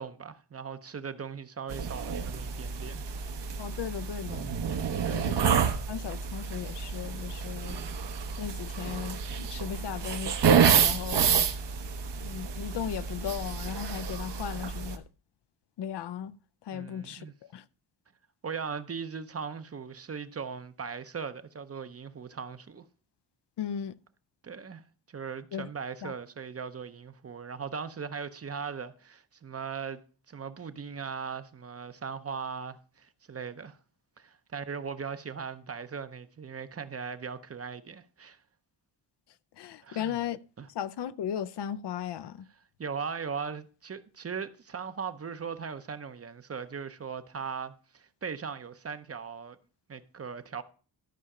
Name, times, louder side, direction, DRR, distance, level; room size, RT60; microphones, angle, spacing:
voice 1, 0.0-3.0 5.0-5.4 16.7-17.3 18.4-22.8 24.4-30.0 30.3-33.8 34.2-38.4 39.8-40.2 40.6-40.7 42.8-49.6 49.9-50.6, right 6 dB, 35° right, 0.7 m, -39 dB
sound 1, 1.7-15.0, right 7 dB, 75° right, 1.1 m, -29 dB
voice 2, 3.6-4.5 5.1-7.8 8.4-11.3 12.2-15.0 15.8-16.4 16.7-17.3 17.5-17.6 23.6-24.0 25.5-25.7 26.0-26.1 39.6-40.4 40.7-42.5, left 9 dB, 70° left, 0.6 m, -36 dB
13.0 x 5.6 x 4.9 m
wide cardioid pair, 135°, 42 cm